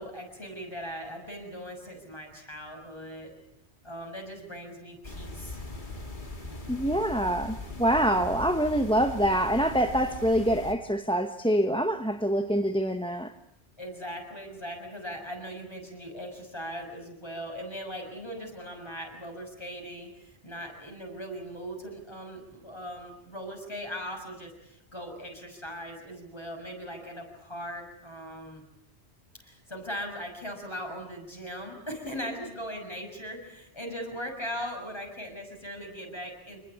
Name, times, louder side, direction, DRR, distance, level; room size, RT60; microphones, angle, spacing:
voice 1, 0.0-3.3 3.8-5.6 13.8-28.6 29.4-36.6, equal, 25° left, 6.6 m, -39 dB
sound 1, 5.0-10.7, left 2 dB, 45° left, 2.7 m, -40 dB
voice 2, 6.7-13.3, equal, 5° left, 0.9 m, -25 dB
26.5 x 20.5 x 8.6 m
omnidirectional pair, 1.1 m